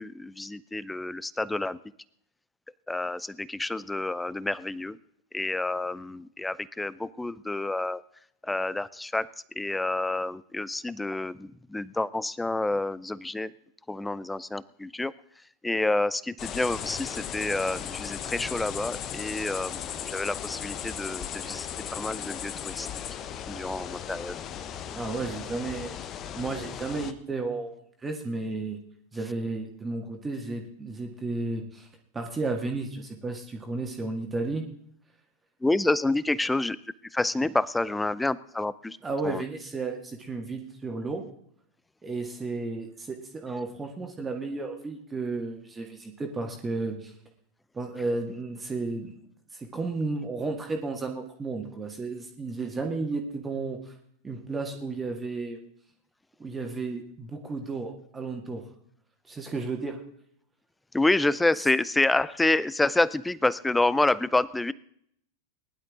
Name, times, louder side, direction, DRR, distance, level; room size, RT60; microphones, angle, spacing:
voice 1, 0.0-1.8 2.9-5.0 5.3-8.0 8.4-9.3 9.5-13.5 13.9-15.1 15.6-22.9 23.5-24.4 35.6-36.8 37.1-39.0 39.2-39.4 60.9-64.7, left 2 dB, 5° left, 20 dB, 0.5 m, -28 dB
sound 1, 16.4-27.1, left 9 dB, 30° left, 0.9 m, -37 dB
voice 2, 24.9-26.0 26.4-28.8 29.1-31.9 32.1-34.7 39.0-41.2 42.0-47.1 47.7-49.1 49.5-53.9 54.2-55.6 56.4-58.6 59.3-60.0, right 3 dB, 15° right, 3 dB, 1.9 m, -33 dB
20.0 x 11.0 x 3.7 m, 0.68 s
figure-of-eight pair, 90°, 0 cm